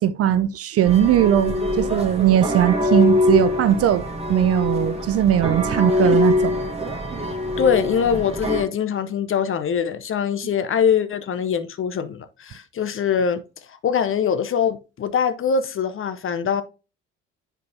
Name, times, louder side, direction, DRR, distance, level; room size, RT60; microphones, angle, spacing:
voice 1, 0.0-6.6, right 11 dB, 40° right, 0.5 m, -19 dB
sound 1, 0.9-8.6, left 2 dB, 15° right, 1.8 m, -23 dB
voice 2, 7.6-13.4 13.7-16.6, left 7 dB, 35° left, 0.7 m, -23 dB
8.6 x 5.1 x 2.7 m
hypercardioid pair, 55°, 38 cm